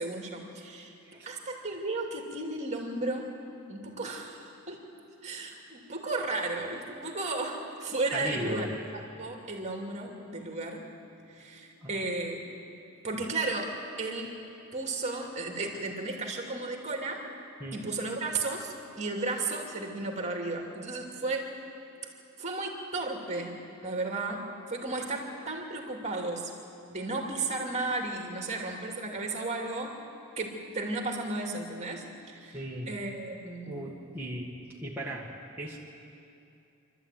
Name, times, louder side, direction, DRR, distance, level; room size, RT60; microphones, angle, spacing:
voice 1, 0.0-0.9 1.3-3.3 3.7-4.8 5.2-8.7 8.9-10.9 11.3-12.5 13.0-13.7 14.0-14.4 14.7-17.2 17.7-21.5 22.4-26.5 26.9-30.0 30.4-32.6 32.9-33.7, right 2 dB, 30° right, 1 dB, 2.6 m, -34 dB
voice 2, 8.1-8.7 11.8-12.0 17.6-17.9 32.5-32.9 33.6-34.5 34.8-35.8, equal, 10° right, -6 dB, 1.9 m, -37 dB
26.5 x 13.0 x 9.2 m, 2.7 s
head